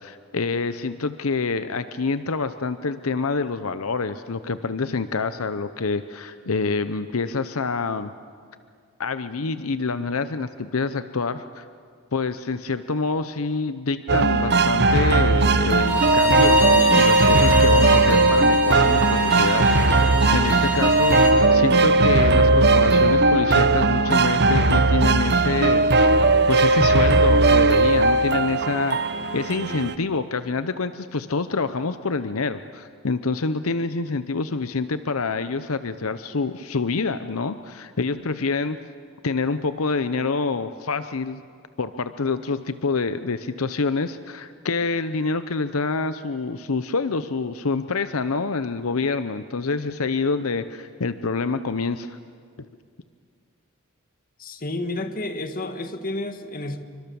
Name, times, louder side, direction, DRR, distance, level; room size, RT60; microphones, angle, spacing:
voice 1, 0.0-8.1 9.0-11.6 12.1-26.1 26.5-29.0 29.3-38.8 39.2-41.4 41.8-52.2, left 4 dB, 80° left, 11 dB, 0.8 m, -26 dB
sound 1, 14.1-30.0, right 2 dB, 50° right, 0.9 m, -18 dB
Bowed string instrument, 15.8-21.4, equal, 10° right, 3.6 m, -25 dB
voice 2, 54.4-56.8, left 2 dB, 45° left, 7 dB, 1.7 m, -30 dB
27.5 x 24.5 x 7.1 m, 2.1 s
head